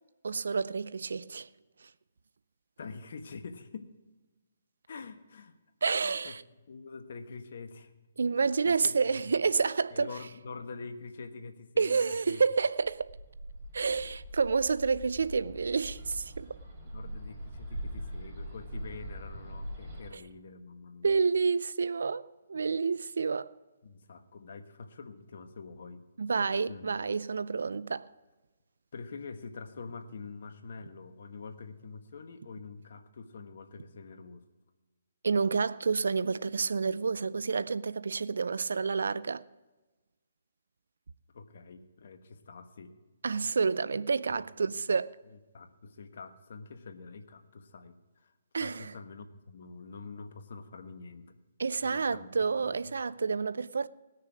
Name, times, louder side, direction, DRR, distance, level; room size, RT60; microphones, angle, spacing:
voice 1, 0.2-1.5 5.8-6.4 8.2-10.1 11.8-13.1 13.7-16.6 21.0-23.5 26.2-28.1 35.2-39.4 43.2-45.2 48.5-48.9 51.6-53.9, right 5 dB, 75° right, 0.5 m, -29 dB
voice 2, 2.8-3.9 4.9-5.5 6.0-8.0 8.4-9.3 9.9-12.4 16.8-21.1 23.8-26.1 26.7-26.9 28.9-34.4 41.3-43.0 44.3-44.7 45.3-51.4 51.8-52.3 52.6-53.0, left 4 dB, 65° left, 1.2 m, -46 dB
Bird, 12.8-20.1, equal, 30° right, 5.0 m, -42 dB
20.0 x 6.6 x 5.0 m
hypercardioid pair, 140°, 0 cm